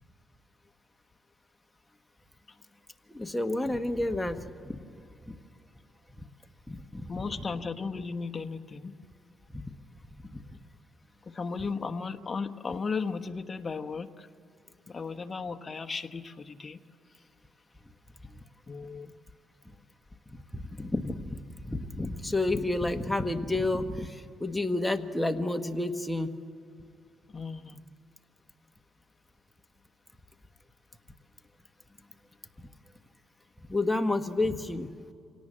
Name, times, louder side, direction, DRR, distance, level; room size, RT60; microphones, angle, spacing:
voice 1, 3.1-4.8 5.3-5.4 6.7-7.4 9.5-9.7 10.3-10.6 20.5-26.3 33.7-34.9, left 2 dB, 10° left, 6 dB, 1.4 m, -30 dB
voice 2, 7.1-8.9 11.3-14.3 14.9-16.8 18.7-19.1 27.3-27.8, left 4 dB, 35° left, 6 dB, 1.2 m, -35 dB
26.0 x 18.0 x 7.5 m, 2.5 s
cardioid pair, 90°, 0 cm